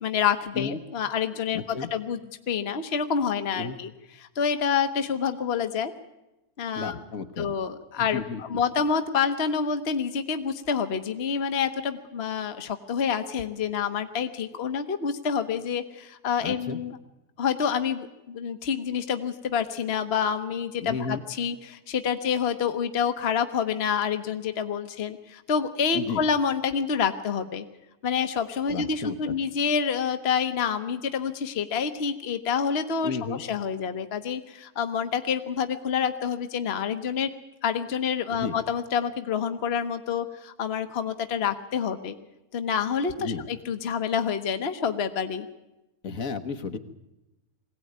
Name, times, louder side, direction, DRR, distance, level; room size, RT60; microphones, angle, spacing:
voice 1, 0.0-2.2 2.5-3.9 4.2-5.9 6.6-6.9 7.4-17.0 17.4-27.6 28.0-37.3 37.6-42.2 42.5-45.5, left 7 dB, 45° left, 8 dB, 1.2 m, -28 dB
voice 2, 1.5-1.9 3.5-3.8 6.8-7.5 8.0-8.4 16.4-16.8 20.8-21.2 25.9-26.2 28.7-29.4 33.0-33.4 38.3-38.6 43.2-43.5 46.0-46.8, left 5 dB, 65° left, 8 dB, 1.6 m, -33 dB
22.0 x 17.0 x 9.4 m, 0.96 s
omnidirectional pair, 1.6 m